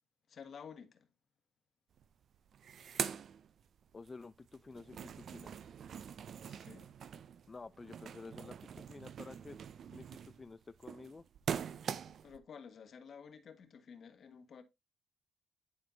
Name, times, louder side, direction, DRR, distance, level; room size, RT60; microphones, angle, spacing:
voice 1, 0.3-1.1 6.4-6.9 12.2-14.6, left 6 dB, 55° left, 1.3 m, -52 dB
sound 1, 2.0-2.1 2.3-4.1 4.5-12.4, right 8 dB, 60° right, 0.5 m, -43 dB
voice 2, 3.9-5.5 7.5-9.6 9.9-11.2, left 4 dB, 25° left, 0.4 m, -51 dB
10.5 x 4.4 x 2.7 m
cardioid pair, 90°, 0 cm